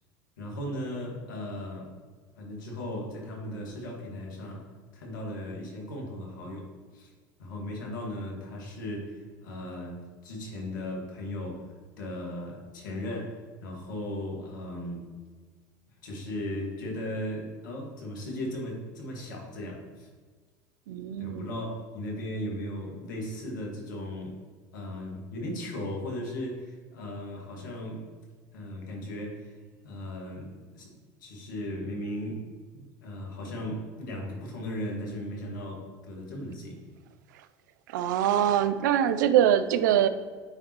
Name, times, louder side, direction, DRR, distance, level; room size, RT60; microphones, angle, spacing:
voice 1, 0.4-1.9 2.4-4.7 4.9-7.1 7.4-15.0 16.0-20.1 21.2-24.4 24.7-28.1 28.5-29.6 29.8-30.9 31.2-32.4 32.7-36.8, left 1 dB, 85° left, -1 dB, 1.8 m, -37 dB
voice 2, 20.9-21.5 37.9-40.1, right 10 dB, 80° right, 12 dB, 0.4 m, -23 dB
8.8 x 3.8 x 3.0 m, 1.5 s
hypercardioid pair, 85°, 10 cm